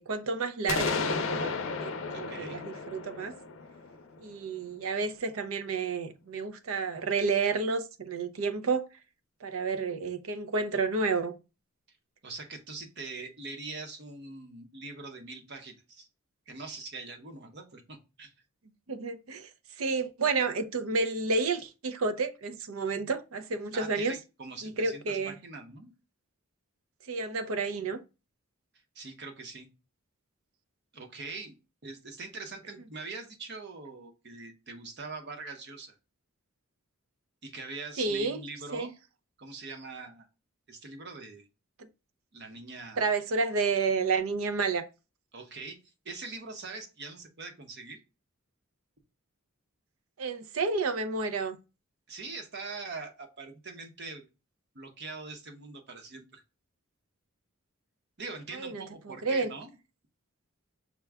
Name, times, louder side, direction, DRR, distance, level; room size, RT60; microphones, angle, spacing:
voice 1, 0.0-1.5 1.8-3.3 4.2-8.9 9.4-11.4 18.9-19.5 19.8-24.1 24.6-25.4 27.1-28.0 38.0-38.4 38.7-38.9 43.0-44.9 50.2-51.6 58.5-59.5, right 4 dB, 75° right, 0.6 m, -30 dB
sound 1, 0.7-4.5, left 4 dB, 65° left, 0.5 m, -33 dB
voice 2, 2.1-2.6 11.9-12.0 12.2-16.1 16.5-18.3 23.7-25.9 28.9-29.7 30.9-31.5 31.8-35.9 37.4-38.9 39.4-40.3 40.7-41.5 42.3-43.1 45.3-45.8 46.0-48.0 52.1-54.3 54.7-56.4 58.2-59.8, right 3 dB, 50° right, 0.9 m, -43 dB
6.0 x 2.2 x 3.4 m
head